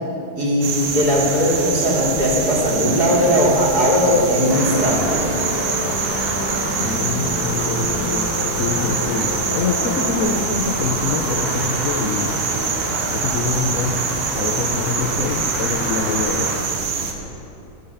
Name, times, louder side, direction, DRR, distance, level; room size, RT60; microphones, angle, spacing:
voice 1, 0.4-5.3, equal, 45° right, -4 dB, 3.4 m, -18 dB
sound 1, 0.6-17.1, right 5 dB, 85° right, 2.2 m, -25 dB
Musical instrument, 3.8-10.2, left 4 dB, 85° left, 1.8 m, -29 dB
Traffic noise roadway noise, 4.5-16.6, equal, ahead, 4.0 m, -29 dB
voice 2, 6.8-8.3 8.6-12.4 13.1-14.0 14.3-16.5, left 4 dB, 50° left, 1 dB, 1.0 m, -25 dB
24.0 x 8.3 x 5.7 m, 2.9 s
omnidirectional pair, 2.3 m